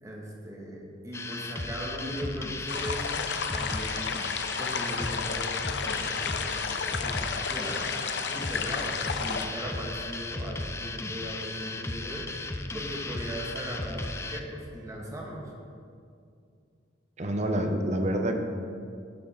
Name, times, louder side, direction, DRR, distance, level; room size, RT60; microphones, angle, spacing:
voice 1, 0.0-4.1 4.6-5.5 5.9-7.8 8.3-12.3 12.7-15.5, equal, 20° right, -2 dB, 1.3 m, -38 dB
sound 1, 1.1-14.4, left 2 dB, 15° left, 0.4 m, -36 dB
sound 2, 2.7-9.5, left 6 dB, 65° left, 0.5 m, -32 dB
voice 2, 17.2-18.3, right 1 dB, 40° right, 5 dB, 0.8 m, -27 dB
12.0 x 6.2 x 4.3 m, 2.3 s
head